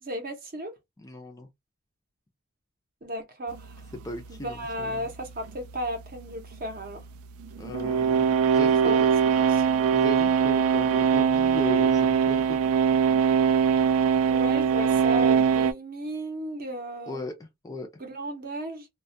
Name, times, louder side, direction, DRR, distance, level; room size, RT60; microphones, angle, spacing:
voice 1, 0.0-0.7 3.0-3.7 4.3-7.0 8.6-9.1 9.3-9.7 14.3-17.2 18.0-18.9, equal, 40° right, 0.7 m, -34 dB
voice 2, 1.0-1.5 4.0-5.0 7.6-9.1 9.9-12.6 17.1-17.9, left 2 dB, 15° left, 0.4 m, -37 dB
sound 1, 3.5-15.7, right 7 dB, 70° right, 0.3 m, -22 dB
2.2 x 2.1 x 2.6 m
head